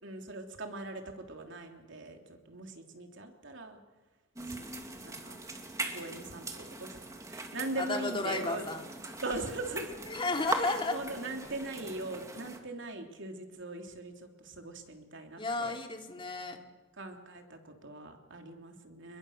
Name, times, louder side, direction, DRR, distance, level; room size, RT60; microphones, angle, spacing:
voice 1, 0.0-3.8 4.5-4.6 5.0-5.4 5.9-7.0 7.3-8.6 9.2-9.9 10.6-15.7 17.0-19.2, right 2 dB, 65° right, 4 dB, 3.4 m, -41 dB
sound 1, 4.4-12.6, right 2 dB, 15° right, 2.4 m, -41 dB
voice 2, 7.8-8.9 10.1-11.0 15.4-16.6, left 3 dB, 25° left, 3 dB, 2.8 m, -33 dB
29.5 x 21.5 x 6.7 m, 1.3 s
head